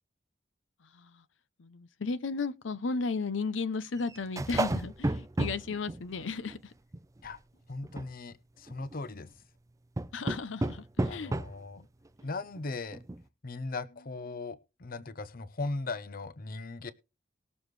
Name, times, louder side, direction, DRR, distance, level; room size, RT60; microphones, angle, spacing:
voice 1, 0.9-1.2 1.6-6.7 9.1-9.3 10.1-11.4 11.8-11.9, left 4 dB, 80° left, 0.7 m, -35 dB
sound 1, 4.0-6.6 6.9-7.4 7.8-8.1 8.7-9.0 10.0-11.6 12.2-12.3 12.6-12.7 12.9-13.2, right 2 dB, 15° right, 0.4 m, -32 dB
voice 2, 7.7-9.3 11.1-11.8 12.2-13.0 13.4-16.9, left 3 dB, 50° left, 0.8 m, -38 dB
19.5 x 7.0 x 3.2 m
head